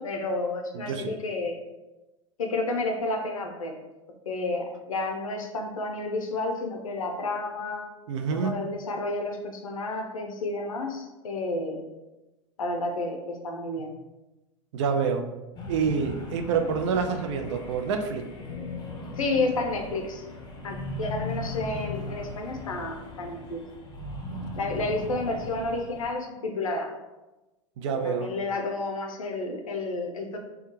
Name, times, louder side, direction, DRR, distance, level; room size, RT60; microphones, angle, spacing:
voice 1, 0.0-1.6 2.4-3.7 4.3-7.9 8.3-11.8 12.6-13.9 19.2-20.2 20.6-23.6 24.6-26.9 28.0-30.4, left 2 dB, 85° left, 3 dB, 0.5 m, -31 dB
voice 2, 0.7-1.1 8.1-8.5 14.7-15.3 15.7-18.2 27.8-28.3, right 5 dB, 60° right, 5 dB, 0.4 m, -27 dB
sound 1, 15.6-26.1, left 2 dB, 25° left, 0.5 m, -38 dB
2.3 x 2.2 x 3.0 m, 1.0 s
hypercardioid pair, 95°, 17 cm